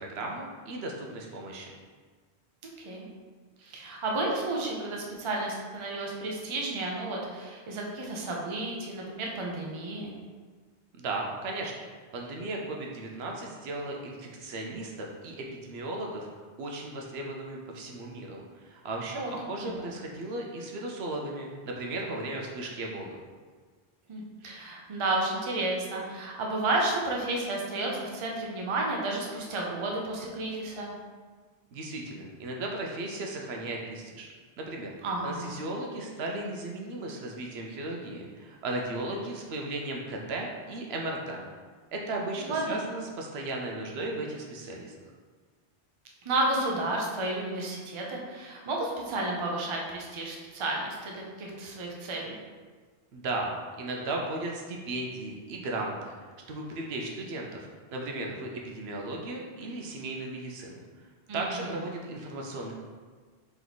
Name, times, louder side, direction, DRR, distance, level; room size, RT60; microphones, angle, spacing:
voice 1, 0.0-1.7 11.0-11.7 12.1-16.3 16.6-23.2 31.7-34.3 34.6-34.9 35.2-41.4 41.9-44.9 53.1-56.1 56.5-57.7 57.9-60.8 61.3-62.7, right 2 dB, 70° right, 0 dB, 0.8 m, -36 dB
voice 2, 3.6-10.1 19.1-19.3 19.6-19.9 24.1-30.9 35.0-35.6 42.4-42.8 46.2-52.4 61.3-61.7, right 2 dB, 35° right, -1 dB, 0.5 m, -32 dB
3.3 x 3.0 x 3.9 m, 1.5 s
omnidirectional pair, 1.1 m